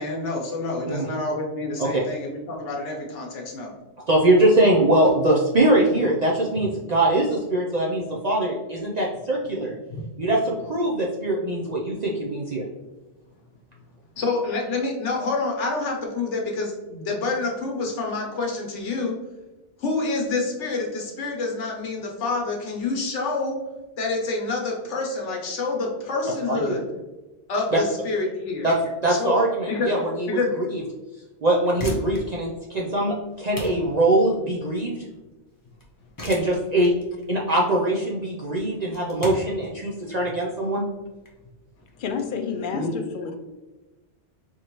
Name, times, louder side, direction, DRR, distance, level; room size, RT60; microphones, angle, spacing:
voice 1, 0.0-3.7 14.2-19.2 19.8-23.6 24.0-26.8 27.5-28.7 29.1-29.3 29.7-29.9 30.3-30.5 42.7-42.9, left 3 dB, 85° left, 0 dB, 1.3 m, -27 dB
voice 2, 4.1-9.7 10.2-12.6 26.5-26.7 28.6-30.8 31.4-35.0 36.2-36.9 37.3-40.8, right 1 dB, 50° right, -3 dB, 0.6 m, -22 dB
sound 1, 31.5-42.2, left 1 dB, 20° left, 0.8 m, -38 dB
voice 3, 42.0-43.4, left 6 dB, 60° left, 6 dB, 0.6 m, -30 dB
4.5 x 3.0 x 3.0 m, 1.1 s
omnidirectional pair, 1.2 m